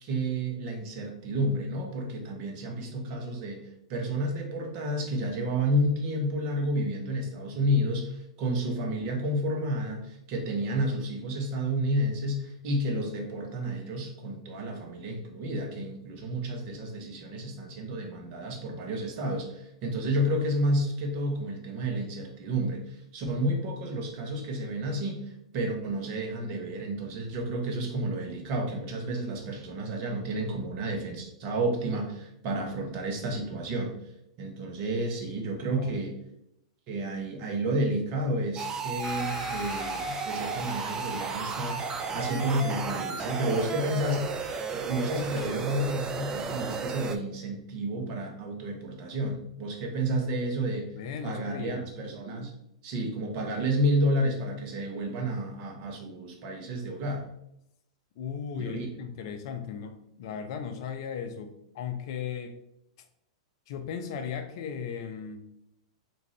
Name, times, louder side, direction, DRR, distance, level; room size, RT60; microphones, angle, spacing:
voice 1, 0.0-33.9 34.4-36.1 36.9-44.3 44.7-50.9 51.2-52.5 52.8-57.2 58.5-58.9, right 1 dB, 45° right, 1 dB, 0.9 m, -31 dB
voice 2, 35.6-36.0 50.9-51.9 58.2-62.6 63.7-65.5, left 7 dB, 55° left, 7 dB, 0.5 m, -37 dB
sound 1, 38.6-47.2, right 5 dB, 20° right, 0.3 m, -34 dB
sound 2, 39.0-45.5, left 1 dB, 5° left, 0.9 m, -44 dB
3.6 x 2.6 x 3.2 m, 0.81 s
hypercardioid pair, 105°, 3 cm